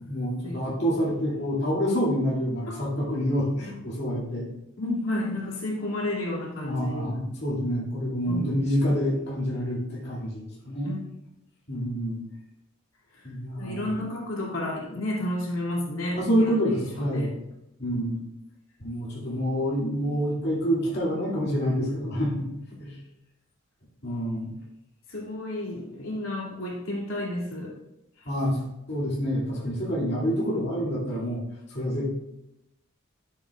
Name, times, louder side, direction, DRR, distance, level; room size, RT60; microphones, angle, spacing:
voice 1, 0.1-4.5 6.6-11.0 11.7-12.2 13.2-13.9 16.2-17.3 17.8-18.2 18.8-22.5 22.8-23.0 24.0-24.5 28.3-28.6 28.9-31.4 31.7-32.1, equal, 50° left, -7 dB, 2.3 m, -27 dB
voice 2, 4.8-7.1 8.3-8.4 10.8-11.0 13.6-16.6 17.0-17.3 25.1-27.7, left 1 dB, 70° left, -4 dB, 2.5 m, -31 dB
12.0 x 7.7 x 2.4 m, 0.88 s
head